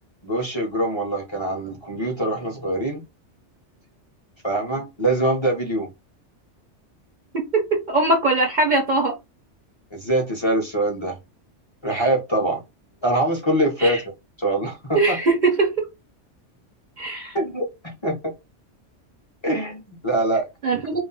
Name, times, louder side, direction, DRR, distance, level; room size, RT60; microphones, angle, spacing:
voice 1, 0.2-3.0 4.4-5.9 9.9-11.2 11.8-12.6 13.0-14.0 14.4-15.2 17.3-18.2 19.4-20.5 20.7-21.0, right 1 dB, 30° left, 0.7 m, -24 dB
voice 2, 7.3-9.2 13.8-14.0 14.9-15.8 17.0-17.4 20.6-21.0, right 3 dB, 50° right, 0.6 m, -21 dB
2.4 x 2.1 x 3.9 m
omnidirectional pair, 1.2 m